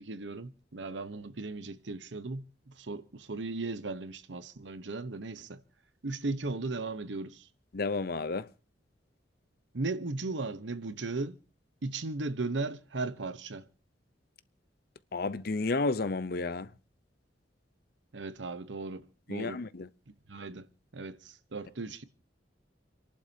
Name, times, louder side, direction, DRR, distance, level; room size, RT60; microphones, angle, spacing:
voice 1, 0.0-5.6 6.0-7.5 9.7-11.4 11.8-13.6 18.1-19.0 19.3-19.6 20.3-20.7 20.9-22.0, right 3 dB, 75° right, 0.9 m, -36 dB
voice 2, 7.7-8.5 15.1-16.7 19.3-19.9, left 3 dB, 55° left, 0.7 m, -31 dB
29.0 x 11.5 x 2.8 m
head